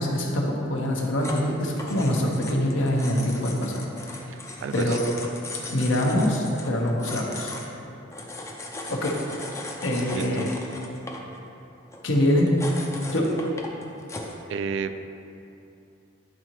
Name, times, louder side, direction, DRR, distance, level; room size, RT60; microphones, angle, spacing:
voice 1, 0.0-3.9 4.7-5.0 5.7-7.5 8.9-9.2 9.8-10.5 12.0-12.5 13.1-13.3, left 1 dB, 70° left, -1 dB, 1.0 m, -24 dB
sound 1, 1.2-14.4, left 2 dB, 15° left, 0.5 m, -38 dB
voice 2, 4.3-5.0 10.1-10.5 14.5-15.0, right 5 dB, 65° right, 10 dB, 0.3 m, -32 dB
10.5 x 3.8 x 3.0 m, 2.7 s
head